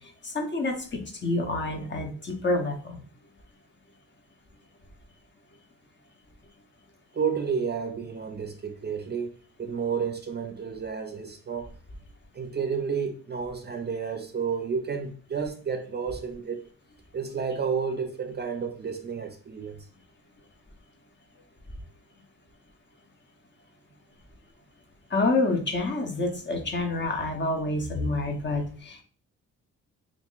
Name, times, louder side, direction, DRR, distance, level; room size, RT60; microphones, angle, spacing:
voice 1, 0.2-3.0 25.1-29.0, left 2 dB, 35° left, 0.8 m, -28 dB
voice 2, 7.1-9.3 9.6-11.7 12.3-16.6 17.1-19.8, right 6 dB, 30° right, 0.5 m, -31 dB
2.9 x 2.5 x 3.7 m
cardioid pair, 80°, 32 cm